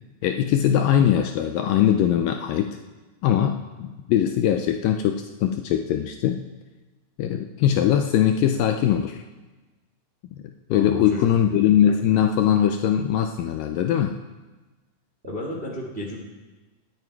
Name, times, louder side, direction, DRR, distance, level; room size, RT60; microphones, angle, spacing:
voice 1, 0.2-2.8 3.2-6.4 7.2-9.2 10.4-10.5 10.7-14.2, left 10 dB, 80° left, 6 dB, 2.1 m, -21 dB
voice 2, 10.7-11.3 15.2-16.2, left 1 dB, 30° right, -2 dB, 1.1 m, -32 dB
18.5 x 9.6 x 4.6 m, 1.2 s
omnidirectional pair, 4.4 m